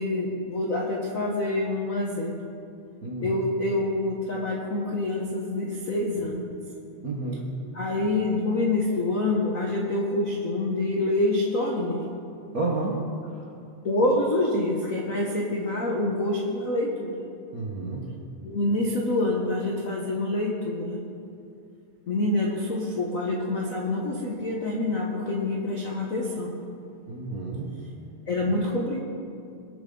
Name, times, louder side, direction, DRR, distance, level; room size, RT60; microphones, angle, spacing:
voice 1, 0.0-2.4 3.2-6.4 7.7-12.1 13.8-17.1 18.4-21.1 22.1-26.6 28.3-29.0, left 2 dB, 75° left, -2 dB, 0.7 m, -26 dB
voice 2, 3.0-3.4 7.0-7.6 12.5-13.0 13.3-13.4 17.5-18.1 27.1-27.7, right 2 dB, 55° right, -3 dB, 0.9 m, -31 dB
21.0 x 8.7 x 3.8 m, 2.5 s
omnidirectional pair, 3.4 m